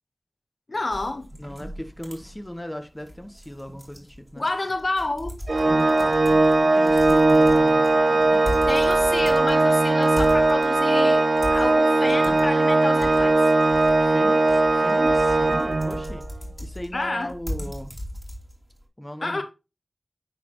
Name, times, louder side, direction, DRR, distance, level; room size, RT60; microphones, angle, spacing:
voice 1, 0.7-1.3 4.4-5.3 8.7-11.2 11.5-13.3 16.9-17.3 19.2-19.4, left 2 dB, 60° left, 1.2 m, -29 dB
sound 1, 0.9-18.8, equal, 10° right, 2.9 m, -38 dB
voice 2, 1.4-4.4 5.7-8.7 9.1-9.3 14.0-16.3 16.6-17.9 19.0-19.4, equal, 15° left, 1.0 m, -37 dB
Organ, 5.5-16.2, right 2 dB, 55° right, 0.5 m, -19 dB
9.8 x 4.1 x 3.1 m
wide cardioid pair, 45°, 0 cm